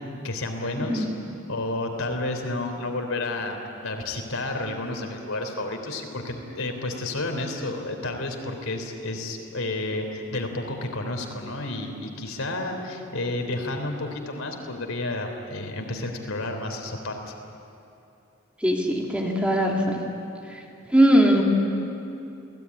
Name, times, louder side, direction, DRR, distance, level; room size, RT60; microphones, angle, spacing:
voice 1, 0.2-1.1 1.5-17.3, left 2 dB, 80° left, 4 dB, 3.6 m, -31 dB
voice 2, 18.6-20.0 20.9-21.4, equal, 5° right, -1 dB, 2.9 m, -20 dB
28.5 x 18.5 x 9.7 m, 2.7 s
head